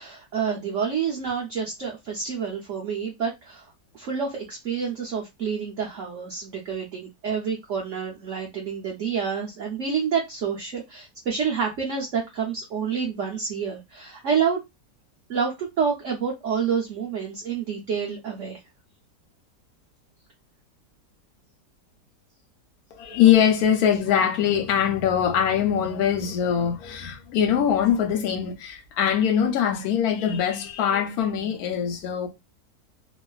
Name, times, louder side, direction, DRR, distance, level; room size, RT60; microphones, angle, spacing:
voice 1, 0.0-3.7 3.9-14.6 15.3-18.6, right 6 dB, 60° right, 0.8 m, -28 dB
voice 2, 22.9-32.3, left 9 dB, 70° left, 1.1 m, -22 dB
3.0 x 2.4 x 2.3 m
omnidirectional pair, 1.8 m